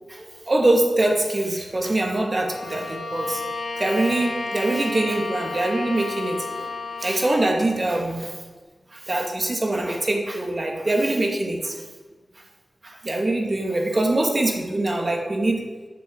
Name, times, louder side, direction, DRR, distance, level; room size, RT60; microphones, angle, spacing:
voice 1, 0.1-3.4 3.8-6.7 7.0-8.3 8.9-11.8 12.8-15.6, right 2 dB, 40° right, 1 dB, 2.2 m, -23 dB
Bowed string instrument, 2.4-7.3, left 3 dB, 65° left, 1.2 m, -32 dB
8.9 x 7.1 x 7.8 m, 1.4 s
wide cardioid pair, 75°, 0 cm